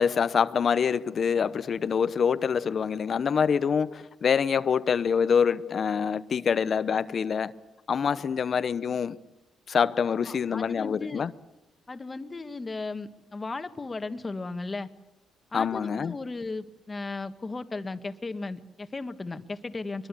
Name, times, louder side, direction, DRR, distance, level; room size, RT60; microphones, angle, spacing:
voice 1, 0.0-7.5 7.9-9.2 9.7-11.3 15.5-16.1, left 6 dB, 50° left, 0.9 m, -25 dB
voice 2, 10.3-11.3 11.9-14.9 15.5-20.1, left 3 dB, 25° left, 1.6 m, -36 dB
23.0 x 22.0 x 8.4 m
cardioid pair, 90°, 0 cm